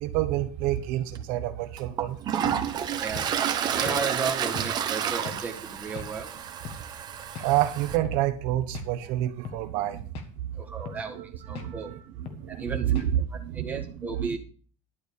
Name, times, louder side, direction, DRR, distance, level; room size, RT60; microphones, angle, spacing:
voice 1, 0.0-2.2 7.4-10.0 10.7-12.0 12.3-13.1 13.4-13.8 14.2-14.4, right 13 dB, 60° right, 8 dB, 1.0 m, -28 dB
Toilet flush, 1.1-1.2 1.8-8.0, right 9 dB, 30° right, 0.8 m, -30 dB
sound 1, 2.5-2.6 3.1-3.3 3.9-4.0 4.5-4.7 5.3-5.4 6.0-6.1 6.6-6.8 7.4-7.5 8.0-8.2 8.7-8.9 9.4-9.6 10.1-10.3 10.9-11.1 11.5-11.7 12.3-12.4 13.0-13.2, left 8 dB, 40° left, 1.5 m, -40 dB
voice 2, 3.0-3.3 3.6-6.3 10.5-11.2 11.5-11.9 12.5-12.8 13.5-14.4, right 5 dB, 10° right, 0 dB, 1.6 m, -34 dB
11.5 x 4.7 x 8.4 m, 0.43 s
cardioid pair, 175°, 15 cm